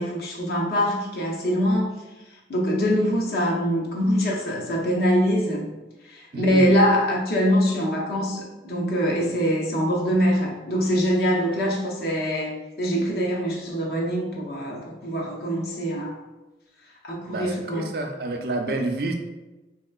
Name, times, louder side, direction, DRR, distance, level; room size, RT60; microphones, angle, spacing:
voice 1, 0.0-1.9 2.5-5.7 6.0-16.1 17.0-17.9, equal, 60° left, -2 dB, 0.6 m, -23 dB
voice 2, 6.3-6.7 17.3-19.1, right 2 dB, 55° right, 4 dB, 0.4 m, -29 dB
3.2 x 2.8 x 2.3 m, 1.1 s
head